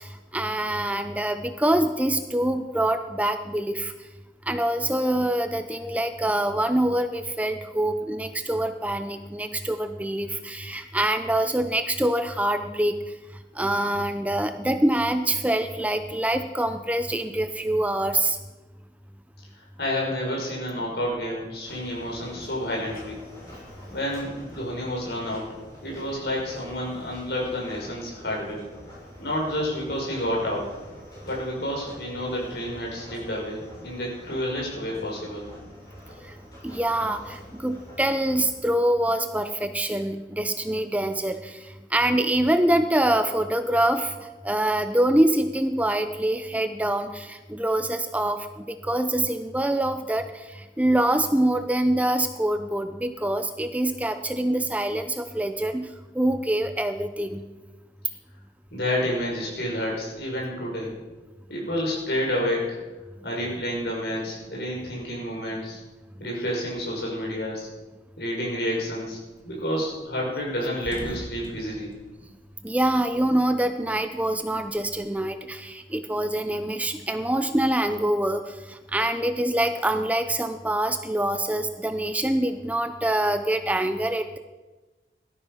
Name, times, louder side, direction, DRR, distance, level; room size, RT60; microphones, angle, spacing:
voice 1, 0.0-3.9 4.5-12.9 13.5-18.4 36.2-36.4 36.6-55.9 56.1-57.5 72.6-84.4, right 1 dB, 10° right, 8 dB, 0.6 m, -25 dB
voice 2, 19.8-23.2 23.9-25.5 25.8-28.6 29.2-30.7 31.2-35.4 58.7-60.9 61.5-62.8 63.2-65.8 66.2-67.7 68.2-69.2 69.4-71.9, equal, 70° left, -3 dB, 5.9 m, -29 dB
sound 1, 21.6-38.5, equal, 20° left, 6.8 m, -46 dB
sound 2, 68.7-69.1 69.5-69.6 69.9-70.0 70.3-73.3 73.6-75.3, equal, 45° left, 2.5 m, -42 dB
17.5 x 13.0 x 5.7 m, 1.2 s
head